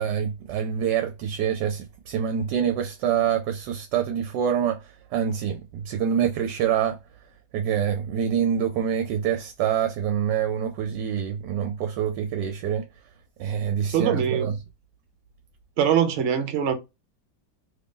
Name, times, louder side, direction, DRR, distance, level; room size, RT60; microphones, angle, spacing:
voice 1, 0.0-4.8 5.1-7.0 7.5-12.8 13.4-14.5, right 8 dB, 75° right, 1.1 m, -26 dB
voice 2, 13.9-14.5 15.8-16.7, right 8 dB, 60° right, 0.8 m, -22 dB
3.0 x 2.6 x 3.6 m
omnidirectional pair, 2.0 m